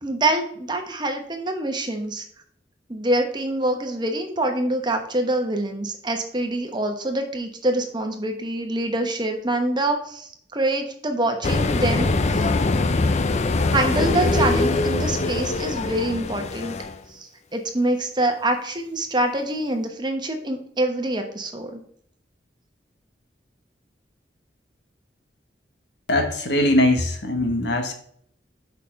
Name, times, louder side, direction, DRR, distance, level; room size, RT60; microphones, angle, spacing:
voice 1, 0.0-2.2 2.9-12.5 13.7-16.7 17.1-21.8, right 1 dB, 25° right, 4 dB, 1.1 m, -25 dB
sound 1, 11.4-17.0, left 3 dB, 40° left, 0.5 m, -22 dB
voice 2, 26.1-27.9, left 1 dB, 70° left, 5 dB, 1.4 m, -21 dB
6.6 x 5.5 x 5.2 m, 0.63 s
head